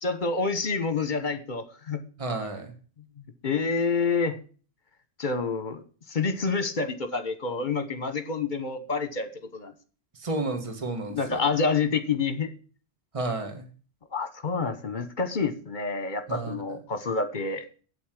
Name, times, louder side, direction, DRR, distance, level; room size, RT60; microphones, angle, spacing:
voice 1, 0.0-2.0 3.4-4.4 5.2-5.8 6.1-9.7 11.1-12.5 14.1-17.6, left 4 dB, 45° left, 10 dB, 1.3 m, -28 dB
voice 2, 2.2-2.7 10.2-11.4 13.1-13.7 16.3-16.5, right 2 dB, 30° right, 5 dB, 1.6 m, -31 dB
8.4 x 8.0 x 7.5 m, 0.40 s
omnidirectional pair, 1.1 m